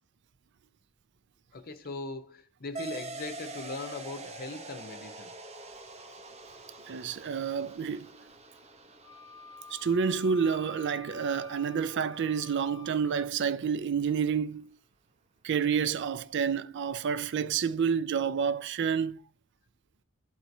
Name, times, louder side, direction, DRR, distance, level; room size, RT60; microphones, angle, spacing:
voice 1, 1.5-5.3, left 3 dB, 45° left, 0.8 m, -40 dB
sound 1, 2.8-11.8, right 3 dB, 30° right, 0.8 m, -45 dB
voice 2, 6.9-8.1 9.7-14.7 15.4-19.2, right 6 dB, 55° right, 0.4 m, -29 dB
Wind instrument woodwind instrument, 9.0-13.3, left 5 dB, 20° left, 0.5 m, -50 dB
13.0 x 4.5 x 2.7 m
head